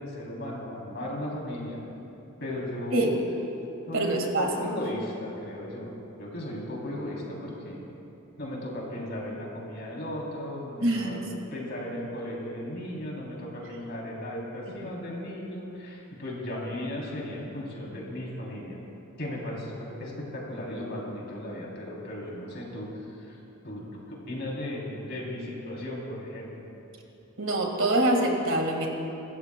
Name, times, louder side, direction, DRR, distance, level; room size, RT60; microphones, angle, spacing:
voice 1, 0.0-1.8 2.4-3.2 3.9-5.9 6.2-7.8 8.4-11.2 11.5-18.8 19.2-23.4 23.6-26.5, left 1 dB, 50° left, -3 dB, 3.2 m, -36 dB
voice 2, 3.9-4.5 10.8-11.2 14.8-14.9 27.4-28.9, right 1 dB, 65° right, 2 dB, 1.8 m, -25 dB
23.5 x 14.0 x 2.2 m, 2.9 s
head